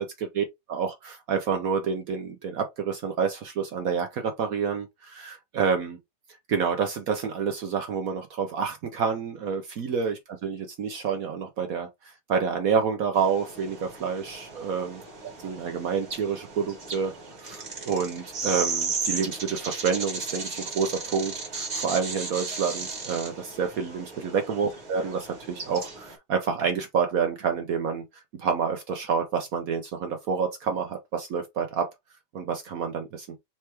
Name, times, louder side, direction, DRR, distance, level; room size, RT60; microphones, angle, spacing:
voice 1, 0.0-6.0 6.5-31.9 32.3-33.3, right 6 dB, 70° right, 0.8 m, -28 dB
sound 1, 13.1-26.1, right 4 dB, 35° right, 1.6 m, -35 dB
4.3 x 3.0 x 3.3 m
omnidirectional pair, 2.3 m